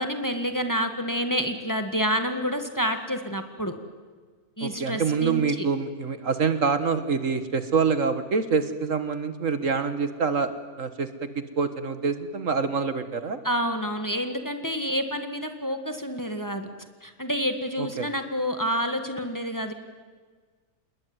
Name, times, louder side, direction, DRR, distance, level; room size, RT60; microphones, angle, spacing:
voice 1, 0.0-3.7 4.6-5.7 13.4-16.7 17.0-19.7, equal, 15° left, 7 dB, 1.8 m, -28 dB
voice 2, 4.6-10.5 10.8-13.4 17.8-18.1, right 5 dB, 60° right, 10 dB, 1.7 m, -26 dB
28.0 x 20.5 x 9.7 m, 1.5 s
omnidirectional pair, 1.5 m